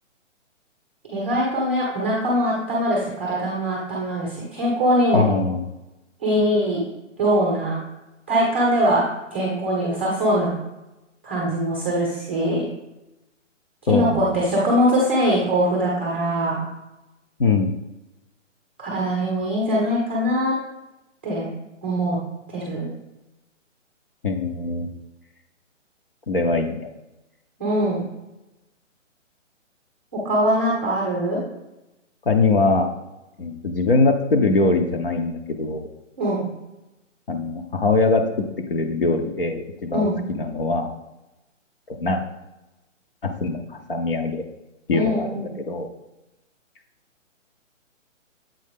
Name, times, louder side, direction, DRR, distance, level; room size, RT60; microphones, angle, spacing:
voice 1, 1.1-5.3 6.2-6.8 7.2-7.8 8.3-9.1 9.3-10.5 11.2-12.7 13.8-16.6 18.8-20.6 21.2-21.5 21.8-22.2 22.5-22.9 27.6-28.0 30.1-31.4 36.2-36.5 39.9-40.2 44.9-45.5, equal, 10° right, -4 dB, 0.7 m, -22 dB
voice 2, 5.1-5.6 13.9-14.4 17.4-17.7 24.2-24.9 26.3-26.9 32.3-32.9 33.4-35.9 37.3-38.3 38.7-40.9 41.9-42.2 43.2-43.6 43.9-44.4 44.9-45.9, left 3 dB, 45° left, 5 dB, 0.7 m, -22 dB
7.7 x 4.5 x 3.6 m, 0.97 s
hypercardioid pair, 170°, 38 cm